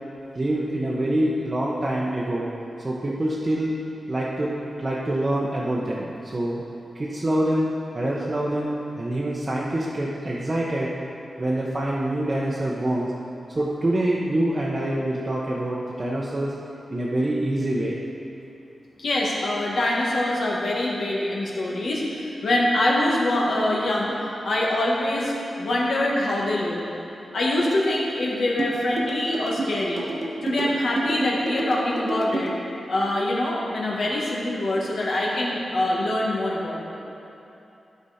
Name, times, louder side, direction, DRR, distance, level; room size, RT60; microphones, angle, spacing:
voice 1, 0.3-2.5 2.8-3.8 4.1-4.5 4.8-6.6 6.9-10.9 11.4-13.1 13.5-16.5 16.9-17.9, right 1 dB, 30° right, -5 dB, 0.9 m, -25 dB
voice 2, 19.0-24.2 24.4-26.8 27.3-30.0 30.4-32.5 32.9-36.8, left 1 dB, 65° left, -4 dB, 1.6 m, -24 dB
sound 1, 28.6-32.6, right 2 dB, 45° right, 1.1 m, -28 dB
12.5 x 5.2 x 4.2 m, 2.9 s
wide cardioid pair, 105°, 0 cm